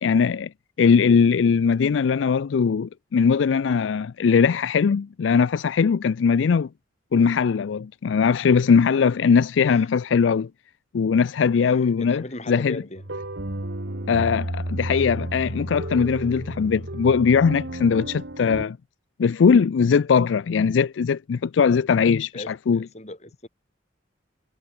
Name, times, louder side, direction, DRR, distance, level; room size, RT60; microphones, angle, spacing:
voice 1, 0.0-0.5 0.8-6.7 7.1-10.5 10.9-12.8 14.1-18.8 19.2-22.8, left 6 dB, 85° left, 0.4 m, -20 dB
voice 2, 11.6-13.0 22.3-23.5, left 1 dB, 35° left, 5.6 m, -38 dB
sound 1, 13.0-18.6, right 1 dB, 70° right, 2.1 m, -32 dB
head